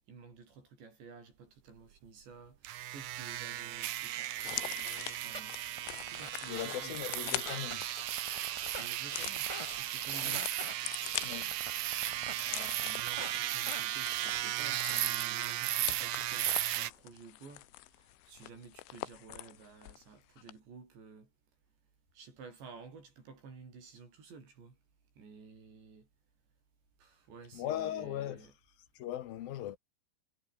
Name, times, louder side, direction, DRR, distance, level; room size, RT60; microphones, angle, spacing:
voice 1, 0.1-5.6 6.1-7.5 8.8-9.5 9.8-10.5 12.4-17.7 18.0-21.3 22.1-24.8 25.2-26.1 27.0-28.5, right 5 dB, 65° right, 9.1 m, -53 dB
sound 1, 2.6-16.9, right 13 dB, 80° right, 1.8 m, -36 dB
sound 2, 4.4-20.1 20.4-20.5, left 17 dB, 90° left, 3.6 m, -44 dB
sound 3, 4.9-5.0 5.3-5.4 5.8-6.6 6.9-7.7 8.1-8.9 9.3-9.7 10.1-10.7 11.1-12.3 12.7-13.4 13.7-13.8, right 1 dB, 5° right, 6.7 m, -42 dB
voice 2, 6.5-7.9 10.2-10.4 11.2-11.6 27.5-28.5 28.9-29.8, left 12 dB, 65° left, 2.6 m, -39 dB
omnidirectional pair, 5.5 m